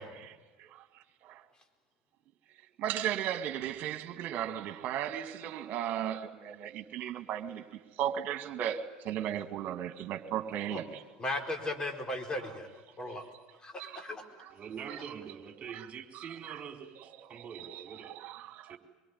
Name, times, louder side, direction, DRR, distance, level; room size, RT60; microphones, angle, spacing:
voice 1, 0.3-1.4 2.8-11.0 13.2-13.3 13.8-14.0 14.4-14.5 14.9-15.0 15.7-15.9 16.1-16.6 17.2-18.8, right 10 dB, 50° right, 2.3 m, -36 dB
voice 2, 11.2-12.7 13.0-13.3 13.6-14.2, left 1 dB, 20° left, 4.4 m, -36 dB
voice 3, 14.5-18.2 18.6-18.8, right 7 dB, 35° right, 4.3 m, -45 dB
24.5 x 23.5 x 9.6 m
hypercardioid pair, 75°, 4 cm